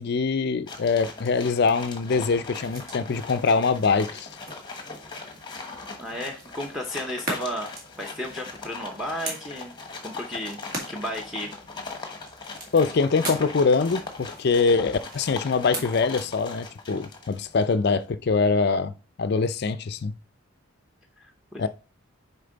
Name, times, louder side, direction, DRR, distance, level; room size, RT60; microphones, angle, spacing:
voice 1, 0.0-4.3 12.7-20.1 21.6-21.7, left 4 dB, 45° left, 0.4 m, -23 dB
sound 1, 0.7-17.8, left 4 dB, 20° left, 1.0 m, -40 dB
sound 2, 2.6-16.4, right 1 dB, 40° right, 2.1 m, -41 dB
voice 2, 6.0-7.7 8.0-9.7 10.0-10.6 10.9-11.5 21.5-21.7, equal, ahead, 0.8 m, -33 dB
6.7 x 4.5 x 3.9 m
head